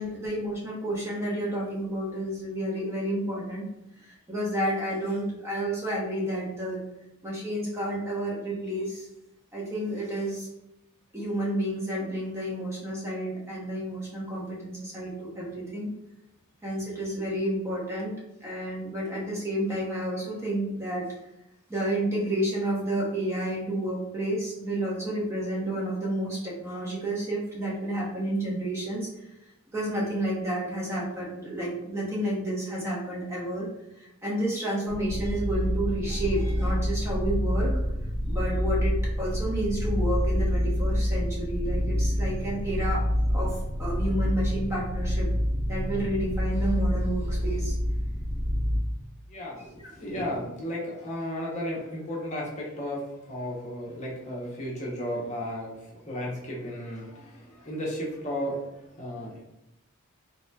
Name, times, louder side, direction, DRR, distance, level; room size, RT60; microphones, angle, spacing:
voice 1, 0.0-3.7 4.0-6.8 7.2-9.1 9.5-10.5 11.1-15.9 16.6-18.1 18.4-21.1 21.7-29.1 29.7-33.7 34.0-37.7 38.3-43.0 43.3-45.3 45.7-47.8 49.6-49.7, right 1 dB, 10° right, -5 dB, 0.6 m, -30 dB
sound 1, 34.9-48.8, equal, 10° left, 1.4 m, -27 dB
voice 2, 49.3-53.0 53.3-55.7 56.0-58.7 59.0-59.4, equal, 35° left, -4 dB, 0.7 m, -34 dB
3.1 x 2.8 x 2.2 m, 0.86 s
head